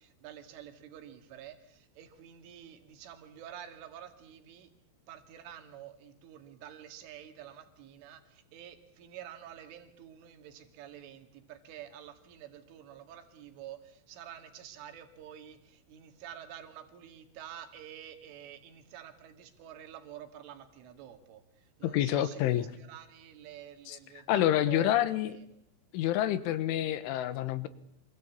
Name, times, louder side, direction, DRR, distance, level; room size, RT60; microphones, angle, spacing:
voice 1, 0.0-4.7 5.1-25.5, right 10 dB, 90° right, 7 dB, 4.7 m, -48 dB
voice 2, 21.8-22.7 23.9-24.0 24.3-25.4 25.9-27.7, left 12 dB, 85° left, 14 dB, 3.9 m, -28 dB
27.0 x 24.0 x 8.4 m, 0.68 s
omnidirectional pair, 5.5 m